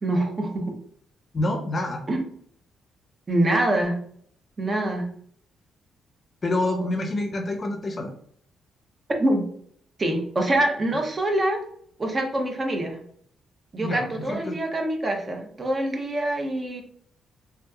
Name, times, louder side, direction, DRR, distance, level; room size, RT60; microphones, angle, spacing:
voice 1, 0.0-0.7 2.1-2.3 3.3-4.0 4.6-5.1 6.6-6.9 9.2-9.5 10.0-11.6 12.0-13.0 13.7-16.8, right 1 dB, 30° right, 3 dB, 0.7 m, -25 dB
voice 2, 1.3-2.0 6.4-8.1 13.8-14.6, left 1 dB, 30° left, 3 dB, 0.6 m, -27 dB
3.5 x 2.9 x 2.3 m, 0.62 s
cardioid pair, 120°, 0 cm